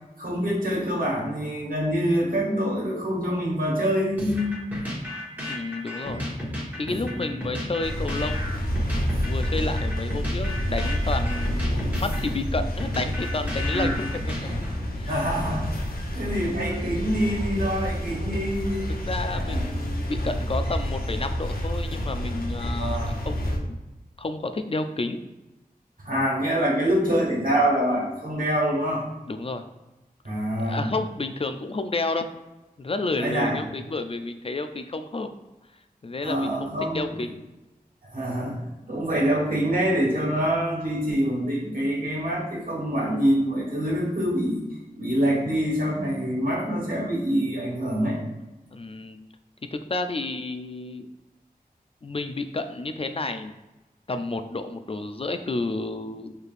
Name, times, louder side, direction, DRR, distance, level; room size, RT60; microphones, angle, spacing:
voice 1, 0.2-4.5 7.0-7.3 13.7-13.9 15.1-15.8 16.1-18.9 19.3-19.8 22.8-23.1 26.0-29.0 30.2-30.8 33.2-33.6 36.2-37.2 38.1-38.6 38.9-44.6 45.0-48.2, equal, 65° right, -4 dB, 1.4 m, -25 dB
sound 1, 4.2-15.0, left 1 dB, 10° right, 1.3 m, -34 dB
voice 2, 5.4-6.3 6.7-8.7 9.3-14.4 14.9-15.2 16.0-16.1 18.9-23.8 24.2-25.2 29.3-29.6 30.5-32.3 32.8-35.3 36.0-37.4 38.9-39.0 48.7-49.2 49.7-51.1 52.0-53.5 54.1-56.4, left 3 dB, 40° left, 8 dB, 0.3 m, -31 dB
sound 2, 7.8-23.6, equal, 75° left, 0.7 m, -29 dB
4.7 x 3.2 x 2.5 m, 1.1 s
wide cardioid pair, 45°, 16 cm